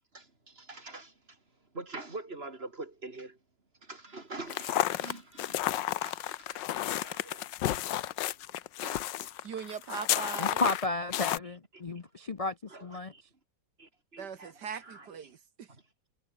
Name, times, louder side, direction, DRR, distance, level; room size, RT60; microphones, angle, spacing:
voice 1, 0.6-1.1 1.7-3.3 3.9-5.6 6.0-7.8 8.8-9.0 11.4-11.5 12.7-13.2 13.8-14.5 14.8-15.1, right 2 dB, 35° right, 3.7 m, -45 dB
sound 1, 4.5-11.4, left 13 dB, 90° left, 1.5 m, -32 dB
voice 2, 9.4-10.6 14.2-15.7, right 7 dB, 70° right, 1.9 m, -40 dB
voice 3, 10.4-12.5 12.8-13.1, left 2 dB, 55° left, 0.4 m, -32 dB
omnidirectional pair, 1.9 m